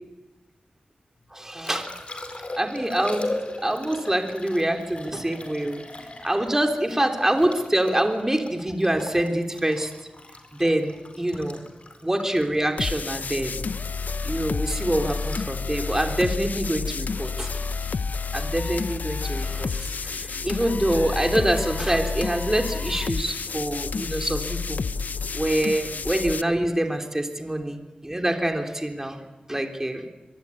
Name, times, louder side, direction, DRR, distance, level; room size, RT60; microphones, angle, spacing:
Liquid, 1.2-17.3 20.1-20.3, left 2 dB, 40° left, 4.7 m, -39 dB
voice 1, 1.3-1.9 2.5-3.3 3.6-5.8 6.2-9.9 10.6-11.6 12.0-13.7 14.2-17.5 18.3-24.8 25.3-29.2 29.5-30.1, right 1 dB, 15° right, 4 dB, 3.3 m, -25 dB
sound 1, 12.8-26.4, left 4 dB, 70° left, 0.8 m, -30 dB
23.5 x 23.0 x 9.7 m, 1.1 s
wide cardioid pair, 75°, 3 cm